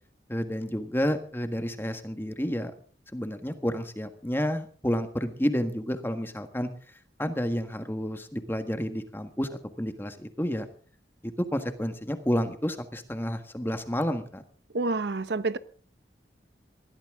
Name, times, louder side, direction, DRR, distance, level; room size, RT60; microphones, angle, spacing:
voice 1, 0.3-2.7 3.1-6.7 7.2-10.7 11.2-14.4, equal, 15° left, 1.6 m, -30 dB
voice 2, 14.7-15.6, right 3 dB, 70° right, 0.8 m, -28 dB
21.0 x 15.0 x 3.7 m
head